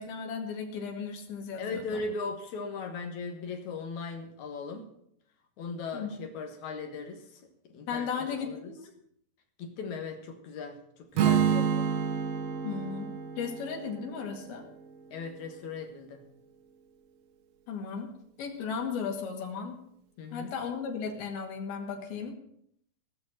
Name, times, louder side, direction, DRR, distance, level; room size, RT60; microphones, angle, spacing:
voice 1, 0.0-2.0 5.9-6.2 7.9-8.8 12.6-13.1 13.4-14.6 17.7-18.1 18.4-19.8 20.3-22.4, left 6 dB, 70° left, 2 dB, 3.9 m, -35 dB
voice 2, 1.6-4.9 5.6-7.4 7.7-8.7 9.6-11.9 15.1-16.2 20.2-20.6, left 4 dB, 55° left, 4 dB, 2.5 m, -38 dB
Strum, 11.1-15.3, right 7 dB, 70° right, 1.6 m, -29 dB
17.5 x 6.5 x 7.7 m, 0.72 s
omnidirectional pair, 4.5 m